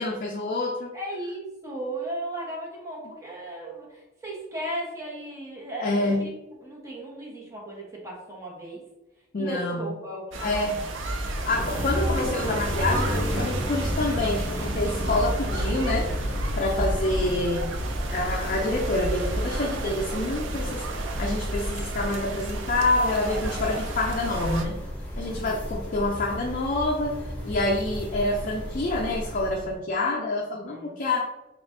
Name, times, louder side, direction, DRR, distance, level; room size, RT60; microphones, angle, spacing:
voice 1, 0.0-0.9 5.8-6.2 9.3-9.9 10.4-10.8 11.4-16.1 16.6-17.8 18.1-20.8 21.2-24.8 25.2-27.2 27.4-31.3, left 2 dB, 45° left, -1 dB, 0.4 m, -27 dB
voice 2, 0.9-8.8 9.4-10.9 11.7-11.9 16.6-17.1 23.0-23.8 25.3-25.7 30.6-31.0, right 1 dB, 15° right, -3 dB, 1.0 m, -36 dB
sound 1, 10.3-24.6, right 1 dB, 75° right, 0.5 m, -31 dB
sound 2, 11.2-29.7, equal, 10° left, 0.9 m, -33 dB
5.3 x 2.4 x 2.6 m, 1.0 s
head